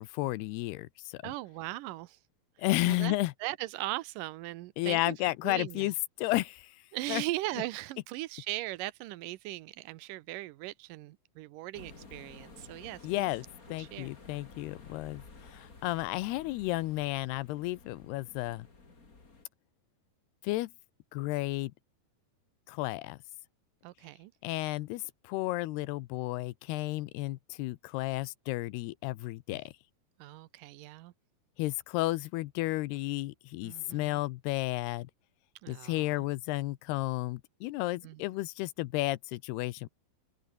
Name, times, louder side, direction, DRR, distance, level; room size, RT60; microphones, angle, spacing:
voice 1, 0.0-1.3 2.6-3.3 4.8-6.8 7.1-7.2 13.0-13.4 13.7-15.2 15.5-18.7 20.4-20.7 21.1-21.7 22.7-23.2 24.4-29.7 31.6-35.1 35.7-39.9, left 19 dB, 85° left, 2.8 m, -32 dB
voice 2, 1.2-2.2 2.9-3.2 3.4-5.9 6.9-13.3 13.8-14.1 23.8-24.3 29.5-29.6 30.2-31.1 33.6-34.2 35.6-36.2 38.0-38.2, right 17 dB, 80° right, 2.1 m, -39 dB
sound 1, 11.7-19.4, left 3 dB, 25° left, 3.2 m, -53 dB
open air
omnidirectional pair, 4.6 m